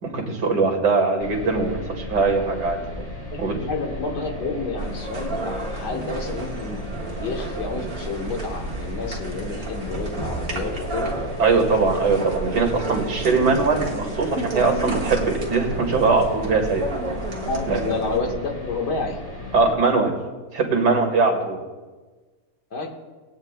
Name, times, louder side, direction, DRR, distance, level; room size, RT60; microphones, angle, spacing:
voice 1, 0.0-2.8 3.4-3.6 11.4-16.8 17.7-17.8 19.5-20.1 20.5-21.6, right 4 dB, 75° right, 2 dB, 2.6 m, -21 dB
sound 1, 1.2-19.7, left 1 dB, 15° left, 1.3 m, -35 dB
voice 2, 3.2-6.8 7.2-11.1 17.4-19.2 22.7-22.9, left 3 dB, 75° left, 1 dB, 2.1 m, -30 dB
sound 2, 4.8-18.2, right 2 dB, 55° right, 2.0 m, -32 dB
21.0 x 9.0 x 2.2 m, 1.3 s
omnidirectional pair, 1.8 m